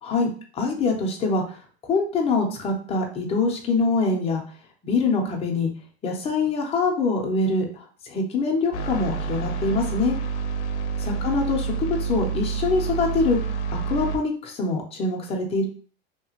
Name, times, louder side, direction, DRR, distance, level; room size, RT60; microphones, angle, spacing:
voice 1, 0.0-1.6 1.9-4.4 4.8-5.7 6.0-10.2 11.0-13.4 13.7-15.7, left 3 dB, 20° left, 1 dB, 0.5 m, -24 dB
sound 1, 8.7-14.2, right 5 dB, 80° left, 0.5 m, -28 dB
2.8 x 2.3 x 2.8 m, 0.43 s
supercardioid pair, 135°, 32 cm